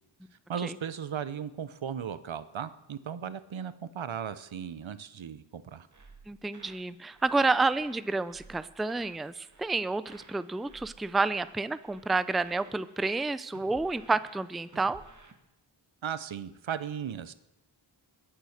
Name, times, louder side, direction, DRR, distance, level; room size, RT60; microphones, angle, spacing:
voice 1, 0.5-5.9 16.0-17.3, right 8 dB, 75° right, 14 dB, 0.8 m, -36 dB
sound 1, 5.9-6.9 7.1-7.4 7.7-9.2 9.5-9.8 10.0-11.6 11.8-12.1 12.4-15.3, right 3 dB, 40° right, 1.7 m, -55 dB
voice 2, 6.3-15.0, right 3 dB, ahead, 15 dB, 0.4 m, -29 dB
21.5 x 7.6 x 6.5 m, 0.91 s
wide cardioid pair, 65°, 47 cm